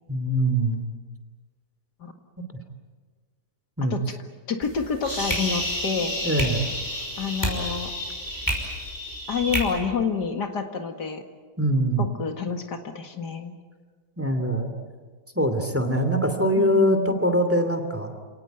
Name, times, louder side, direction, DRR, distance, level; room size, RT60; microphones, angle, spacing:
voice 1, 0.1-0.8 3.8-3.9 6.2-6.6 11.6-12.1 14.2-14.7 15.3-18.1, right 1 dB, 10° right, 7 dB, 2.6 m, -23 dB
voice 2, 4.5-6.1 7.2-7.9 9.3-11.2 12.0-13.5 16.6-17.2, left 6 dB, 80° left, 5 dB, 2.5 m, -28 dB
sound 1, 4.6-9.6, equal, 10° left, 5.6 m, -29 dB
29.0 x 18.5 x 9.3 m, 1.4 s
omnidirectional pair, 1.7 m